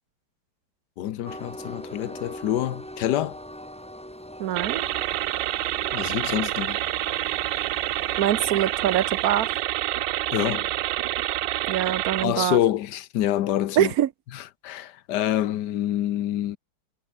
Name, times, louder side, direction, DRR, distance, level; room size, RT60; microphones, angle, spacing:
voice 1, 1.0-3.4 5.9-6.8 10.3-10.7 12.2-13.9 14.3-16.6, left 12 dB, 70° left, 1.4 m, -26 dB
Train, 1.2-9.6, equal, 5° left, 3.1 m, -42 dB
voice 2, 4.4-4.9 8.2-9.5 11.7-12.6 13.8-14.1, right 11 dB, 60° right, 1.2 m, -24 dB
sound 1, 4.6-12.2, right 15 dB, 80° right, 1.3 m, -27 dB
omnidirectional pair, 2.0 m